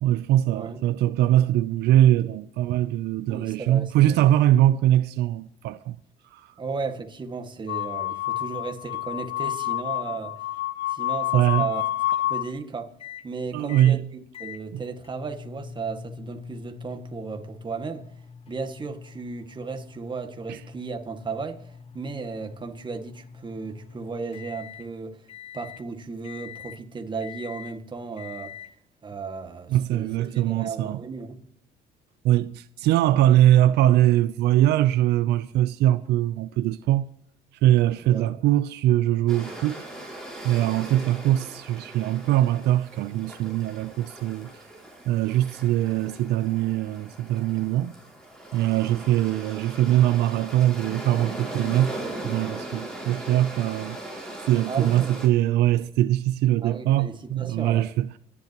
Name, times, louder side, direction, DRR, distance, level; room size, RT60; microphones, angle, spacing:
voice 1, 0.0-6.0 6.3-6.5 11.3-11.7 13.5-14.0 14.7-14.8 20.5-20.6 29.7-31.0 32.2-37.1 37.6-39.9 40.4-44.5 45.1-47.9 48.5-51.9 52.2-58.1, right 13 dB, 80° right, 0.6 m, -22 dB
voice 2, 3.3-4.2 6.6-10.3 10.9-11.8 12.1-12.9 13.2-18.1 18.5-21.7 21.9-25.3 25.5-28.5 29.0-31.5 38.0-38.3 54.7-55.2 56.6-57.9, right 4 dB, 25° right, 1.9 m, -35 dB
sound 1, 7.7-12.5, left 13 dB, 75° left, 0.8 m, -28 dB
sound 2, 13.0-13.3 13.7-14.0 14.3-24.9 25.3-25.8 26.2-26.8 27.2-27.8 28.2-28.7, left 7 dB, 35° left, 1.0 m, -44 dB
sound 3, 39.3-55.3, right 1 dB, 5° left, 5.4 m, -39 dB
28.0 x 11.0 x 3.0 m
cardioid pair, 110°, 17 cm